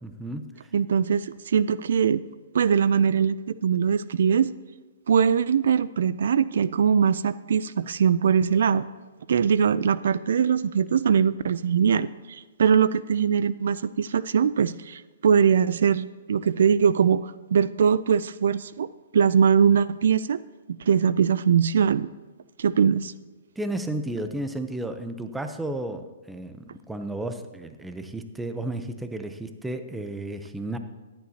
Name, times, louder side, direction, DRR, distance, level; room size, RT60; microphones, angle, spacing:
voice 1, 0.0-0.7 23.6-30.8, right 1 dB, 5° right, 8 dB, 0.6 m, -33 dB
voice 2, 0.7-2.2 2.5-4.5 5.1-8.8 9.3-18.9 19.1-20.4 20.7-22.1 22.6-23.1, right 7 dB, 70° right, 17 dB, 0.3 m, -22 dB
14.0 x 10.5 x 2.8 m, 1.3 s
hypercardioid pair, 145°, 0 cm